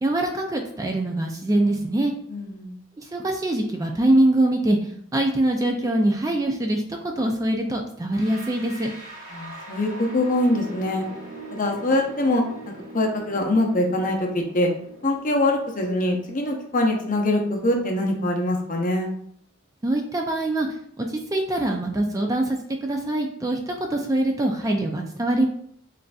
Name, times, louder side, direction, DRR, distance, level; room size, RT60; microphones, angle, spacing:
voice 1, 0.0-2.1 3.0-4.8 5.1-6.8 7.2-8.9 19.8-20.7 21.0-25.5, right 1 dB, 15° right, 2 dB, 0.3 m, -23 dB
voice 2, 2.3-2.7 9.3-11.1 11.5-12.4 12.9-14.7 15.0-19.1, left 1 dB, 40° left, 1 dB, 0.7 m, -23 dB
sound 1, 8.1-19.0, right 2 dB, 40° right, 1.5 m, -42 dB
6.5 x 2.5 x 2.3 m, 0.68 s
head